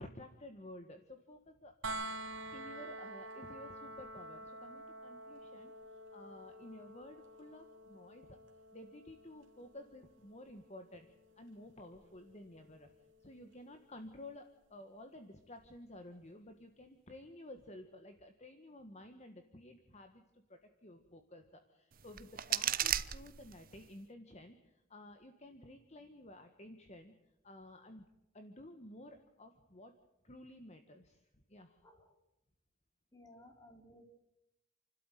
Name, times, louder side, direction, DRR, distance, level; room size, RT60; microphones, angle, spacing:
voice 1, 0.0-1.7 2.5-8.4 8.7-12.9 13.2-27.1 27.4-28.1 28.3-29.9 30.2-31.8, left 1 dB, 35° left, 6 dB, 1.5 m, -53 dB
sound 1, 1.8-13.6 15.6-15.7, right 2 dB, 65° right, 2.8 m, -49 dB
sound 2, 21.9-23.9, right 11 dB, 45° right, 0.9 m, -36 dB
voice 2, 33.1-34.0, left 1 dB, 15° left, 4 dB, 3.3 m, -58 dB
29.0 x 12.5 x 9.2 m, 0.89 s
head